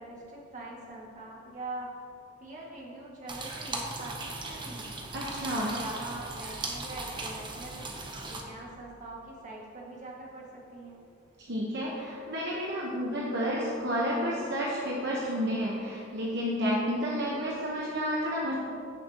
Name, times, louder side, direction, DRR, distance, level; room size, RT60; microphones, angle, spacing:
voice 1, 0.0-1.9 2.4-4.9 5.4-7.9 8.3-11.1, right 2 dB, 40° right, -4 dB, 2.0 m, -43 dB
sound 1, 3.3-8.4, right 2 dB, 25° right, 0.9 m, -38 dB
voice 2, 5.1-5.7 11.4-18.5, equal, 60° right, -4 dB, 1.2 m, -31 dB
16.5 x 6.5 x 3.0 m, 2.6 s
head